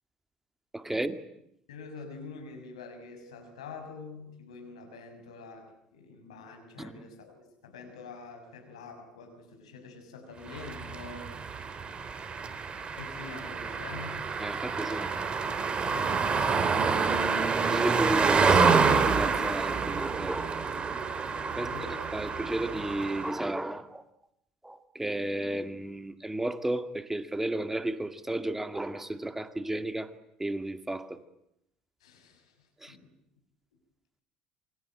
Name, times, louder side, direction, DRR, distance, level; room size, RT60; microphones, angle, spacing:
voice 1, 0.7-1.2 6.8-6.9 14.4-15.1 17.6-20.6 21.6-21.7 22.1-24.0 24.6-30.1 30.4-31.2 32.8-32.9, right 1 dB, 10° right, 10 dB, 2.1 m, -33 dB
voice 2, 1.7-11.7 12.9-14.2 15.8-16.7 21.5-22.0 32.0-32.5 32.9-33.1, left 4 dB, 80° left, 5 dB, 6.1 m, -46 dB
sound 1, 10.5-23.5, right 5 dB, 35° right, 3.4 m, -28 dB
27.5 x 23.0 x 9.0 m, 0.78 s
hypercardioid pair, 65°, 3 cm